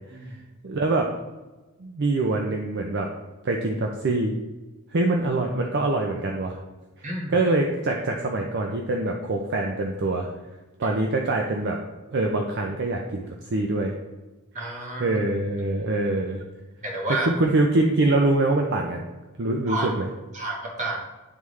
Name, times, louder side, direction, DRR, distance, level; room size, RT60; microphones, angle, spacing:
voice 1, 0.6-1.1 1.8-3.1 3.4-4.3 4.9-6.6 7.0-10.3 10.8-11.8 12.1-13.2 13.5-13.9 15.0-16.4 17.3-19.0 19.4-20.1, right 2 dB, 50° right, 1 dB, 0.5 m, -24 dB
voice 2, 7.0-7.3 10.8-10.9 14.5-15.2 16.8-17.3 19.7-19.9 20.3-21.0, right 2 dB, 35° right, -1 dB, 1.3 m, -30 dB
9.6 x 3.5 x 3.1 m, 1.2 s
head